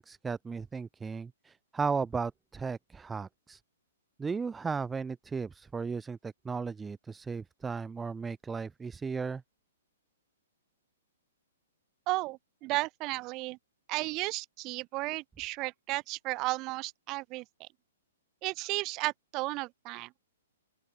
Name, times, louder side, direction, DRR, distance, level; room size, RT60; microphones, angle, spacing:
voice 1, 0.0-3.6 4.2-9.4, right 5 dB, 5° right, 2.2 m, -35 dB
voice 2, 12.1-13.6 13.9-17.7 18.4-20.1, right 22 dB, 25° right, 2.4 m, -34 dB
open air
hypercardioid pair, 170°, 0 cm